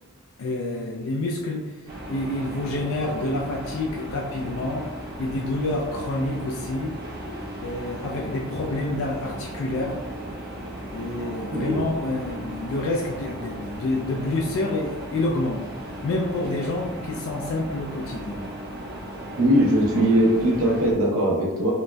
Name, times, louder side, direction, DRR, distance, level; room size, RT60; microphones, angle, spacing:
voice 1, 0.4-4.9 5.2-6.9 7.6-10.0 10.9-18.5, left 2 dB, 65° left, 0 dB, 0.3 m, -28 dB
sound 1, 1.9-20.9, right 1 dB, 50° right, 0.6 m, -36 dB
voice 2, 11.5-11.9 19.4-21.7, right 1 dB, 90° right, -3 dB, 0.7 m, -20 dB
3.9 x 2.0 x 2.2 m, 1.1 s
head